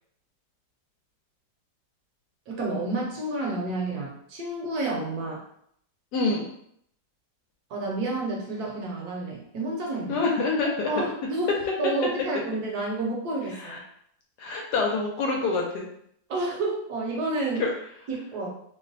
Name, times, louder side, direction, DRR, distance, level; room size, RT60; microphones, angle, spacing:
voice 1, 2.5-5.4 7.7-10.2 10.9-13.8 16.3-17.6 18.1-18.5, right 2 dB, 65° right, -2 dB, 1.1 m, -30 dB
voice 2, 6.1-6.5 10.1-11.1 13.6-13.8 14.4-15.9 17.6-17.7, left 3 dB, 70° left, 0 dB, 1.1 m, -26 dB
3.0 x 2.1 x 3.9 m, 0.69 s
omnidirectional pair, 2.0 m